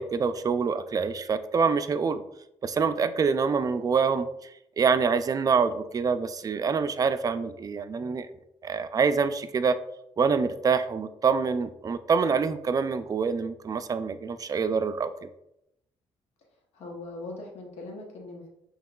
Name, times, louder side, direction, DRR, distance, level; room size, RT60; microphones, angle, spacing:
voice 1, 0.0-2.2 2.6-4.3 4.8-8.3 8.6-9.7 10.2-15.3, right 5 dB, 35° right, 11 dB, 0.3 m, -26 dB
voice 2, 16.7-18.5, left 2 dB, 75° left, 0 dB, 0.9 m, -40 dB
5.5 x 2.9 x 2.3 m, 0.82 s
cardioid pair, 75°, 11 cm